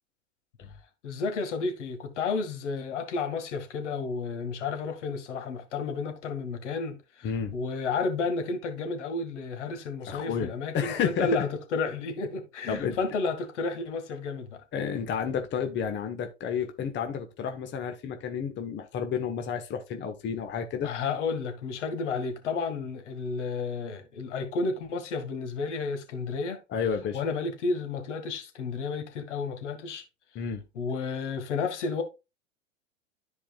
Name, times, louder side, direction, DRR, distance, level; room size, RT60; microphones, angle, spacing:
voice 1, 1.0-14.6 20.8-26.6 27.1-30.0 30.7-32.0, left 4 dB, 70° left, 2.0 m, -32 dB
voice 2, 7.2-7.5 10.1-11.4 12.7-13.0 14.7-20.9 26.7-27.2 30.3-30.6, left 7 dB, 30° left, 1.2 m, -31 dB
13.0 x 4.8 x 2.4 m
hypercardioid pair, 100°, 37 cm